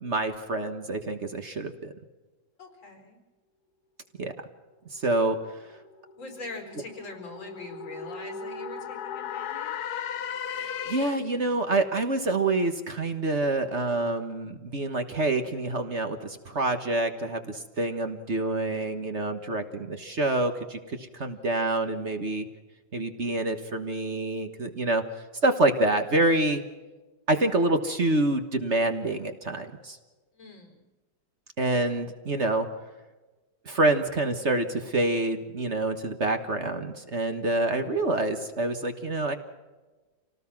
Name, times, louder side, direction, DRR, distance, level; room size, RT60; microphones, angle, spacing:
voice 1, 0.0-1.9 4.2-4.3 4.9-5.4 10.5-22.4 22.9-25.0 25.4-26.6 27.3-30.0 31.6-32.7 33.6-39.4, right 2 dB, 40° right, 7 dB, 1.5 m, -27 dB
voice 2, 2.6-3.2 6.1-10.0 21.3-21.5 30.3-30.8, left 3 dB, 90° left, 4 dB, 4.9 m, -43 dB
sound 1, 5.5-11.4, left 7 dB, 60° left, 1.2 m, -37 dB
27.5 x 18.5 x 5.9 m, 1.2 s
omnidirectional pair, 2.1 m